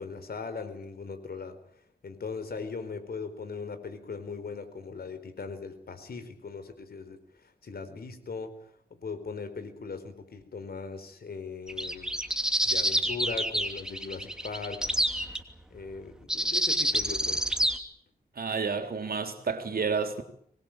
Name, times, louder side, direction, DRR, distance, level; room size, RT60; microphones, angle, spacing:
voice 1, 0.0-1.6 2.0-8.5 8.9-12.1 12.6-14.8 15.7-17.4, left 5 dB, 70° left, 4.5 m, -39 dB
sound 1, 11.7-15.4 16.3-17.8, right 1 dB, 5° right, 2.9 m, -27 dB
voice 2, 18.4-20.2, right 5 dB, 65° right, 3.6 m, -30 dB
25.5 x 21.0 x 9.1 m
wide cardioid pair, 95°, 16 cm